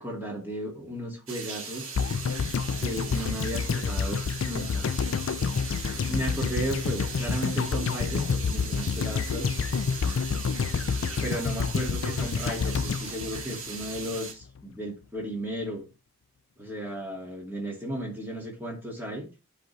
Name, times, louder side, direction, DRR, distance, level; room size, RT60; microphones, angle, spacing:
voice 1, 0.0-1.9 2.8-4.2 4.5-4.9 6.1-9.5 11.2-15.8 16.6-19.3, right 1 dB, 10° right, -1 dB, 2.0 m, -34 dB
sound 1, 1.3-14.3, right 5 dB, 70° right, 1.7 m, -39 dB
sound 2, 1.9-14.2 14.4-14.5, left 6 dB, 60° left, 0.4 m, -29 dB
10.5 x 4.3 x 3.2 m, 0.29 s
head